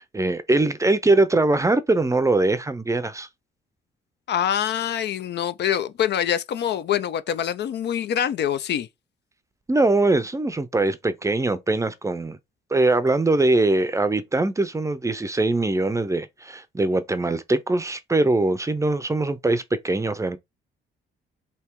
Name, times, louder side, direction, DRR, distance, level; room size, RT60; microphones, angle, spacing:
voice 1, 0.0-3.3 9.7-12.4 12.7-20.4, right 2 dB, 15° right, 0.5 m, -22 dB
voice 2, 4.3-8.9, left 9 dB, 60° left, 0.5 m, -25 dB
3.4 x 2.8 x 4.5 m
cardioid pair, 90°, 20 cm